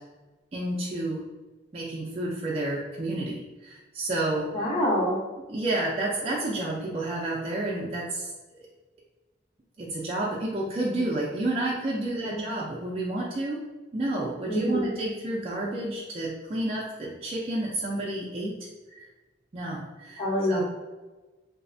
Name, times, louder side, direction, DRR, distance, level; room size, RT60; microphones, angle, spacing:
voice 1, 0.5-1.2 1.7-4.5 5.5-8.3 8.6-8.7 9.8-13.6 13.9-18.5 18.9-19.0 19.5-20.6, right 1 dB, 35° right, -4 dB, 0.3 m, -30 dB
voice 2, 4.5-5.2 12.2-12.4 14.5-14.9 20.2-20.6, equal, 50° left, -11 dB, 0.8 m, -26 dB
3.1 x 2.0 x 2.5 m, 1.2 s
head